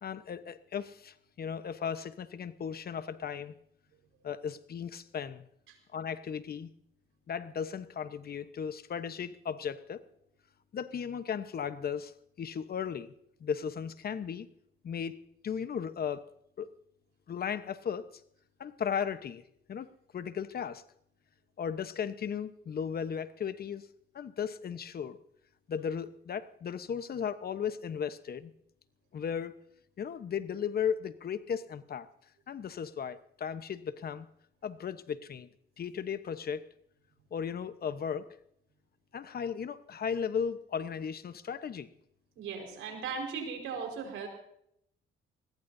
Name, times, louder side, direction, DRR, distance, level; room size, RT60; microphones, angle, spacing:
voice 1, 0.0-3.5 4.2-5.4 5.9-6.7 7.3-10.0 10.7-12.1 12.4-13.1 13.4-14.5 14.8-16.3 16.6-16.7 17.3-18.2 18.6-19.4 19.7-20.8 21.6-23.9 24.1-25.2 25.7-28.5 29.1-29.6 30.0-32.1 32.5-34.3 34.6-35.5 35.8-36.7 37.3-38.3 39.1-41.9, left 7 dB, 50° left, 12 dB, 1.1 m, -36 dB
voice 2, 42.3-44.3, right 5 dB, 90° right, 3 dB, 4.9 m, -38 dB
22.5 x 20.0 x 2.8 m, 0.74 s
cardioid pair, 90°, 20 cm